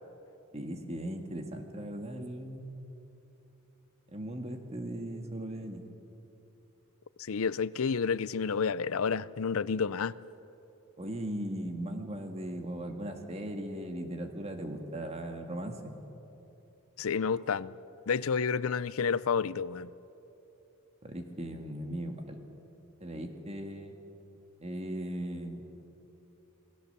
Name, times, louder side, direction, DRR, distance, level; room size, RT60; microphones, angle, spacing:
voice 1, 0.5-2.7 4.1-5.8 11.0-15.9 21.0-22.4 23.0-23.9 24.6-25.8, right 1 dB, 30° right, 1.9 m, -38 dB
voice 2, 7.2-10.1 17.0-17.7 18.1-19.9, left 5 dB, 75° left, 0.5 m, -30 dB
28.0 x 19.5 x 6.8 m
head